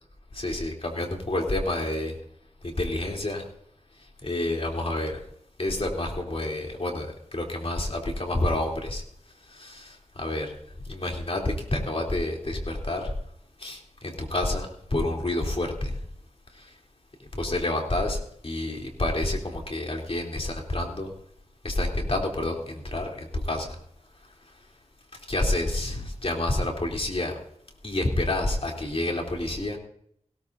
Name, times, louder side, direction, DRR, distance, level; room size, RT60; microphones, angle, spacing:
voice 1, 0.3-2.2 2.6-3.5 4.2-5.2 5.6-9.0 9.5-10.6 10.8-13.1 13.6-16.0 16.5-16.7 17.3-21.1 21.6-23.8 25.1-27.3 27.8-29.8, left 1 dB, 50° left, 1 dB, 3.2 m, -29 dB
19.5 x 17.0 x 2.7 m, 0.68 s
wide cardioid pair, 50°, 12 cm